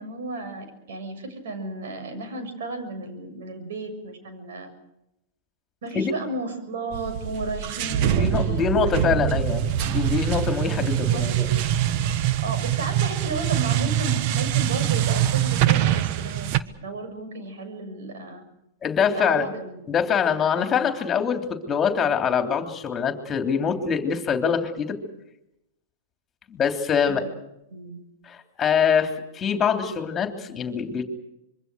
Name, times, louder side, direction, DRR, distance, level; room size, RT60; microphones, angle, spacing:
voice 1, 0.0-4.7 5.8-8.9 10.9-11.7 12.4-16.5 16.8-18.4 19.1-20.1 20.6-20.7 27.0-27.3 27.7-28.0, right 2 dB, 70° right, 8 dB, 6.7 m, -34 dB
sound 1, 6.9-16.6, right 11 dB, 50° right, 1.3 m, -24 dB
voice 2, 8.1-11.5 18.8-19.5 19.9-25.0 26.5-27.2 28.3-31.0, left 6 dB, 25° left, 6 dB, 3.3 m, -24 dB
26.0 x 23.0 x 6.4 m, 0.87 s
hypercardioid pair, 115°, 0 cm